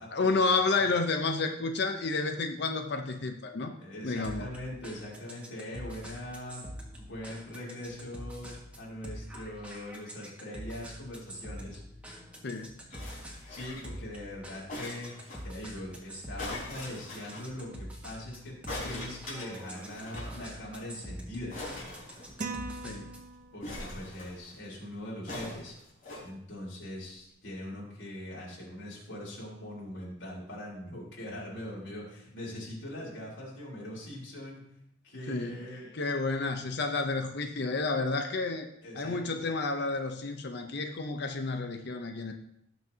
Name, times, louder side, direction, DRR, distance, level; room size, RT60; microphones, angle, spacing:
voice 1, 0.1-3.7 4.0-4.5 12.4-12.7 22.8-23.1 35.3-35.6 35.9-38.7 38.9-42.3, left 3 dB, 60° left, 6 dB, 0.7 m, -30 dB
voice 2, 3.8-6.6 7.0-11.8 13.5-18.6 18.8-21.6 23.5-25.8 26.2-34.6 35.0-35.9 38.8-39.2, left 1 dB, 85° left, -5 dB, 3.9 m, -41 dB
sound 1, 4.2-23.3, equal, 5° right, 1.7 m, -45 dB
sound 2, 12.9-14.0 14.7-15.4 16.4-17.5 18.7-20.4 20.6-20.7 20.9-21.1 21.5-22.7 23.6-24.6 25.3-26.2 27.0-27.1, left 2 dB, 45° left, 4.6 m, -41 dB
sound 3, 22.4-23.9, right 3 dB, 45° right, 0.9 m, -40 dB
18.5 x 6.3 x 2.8 m, 0.75 s
head